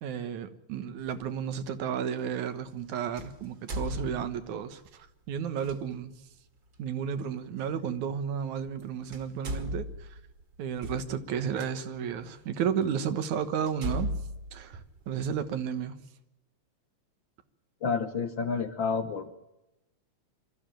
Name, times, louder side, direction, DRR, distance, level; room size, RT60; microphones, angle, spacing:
voice 1, 0.0-6.1 6.8-10.1 10.6-14.1 14.5-16.0, right 8 dB, 90° right, 10 dB, 2.8 m, -33 dB
sound 1, 1.1-1.3 3.2-4.7 5.6-5.8 7.6-7.7 8.7-8.8 9.1-11.7 12.4-12.5 13.0-13.1 13.7-15.5, equal, 40° right, 2.4 m, -37 dB
voice 2, 17.8-19.3, left 5 dB, 65° left, 8 dB, 1.3 m, -30 dB
24.5 x 14.0 x 9.0 m, 0.92 s
omnidirectional pair, 3.3 m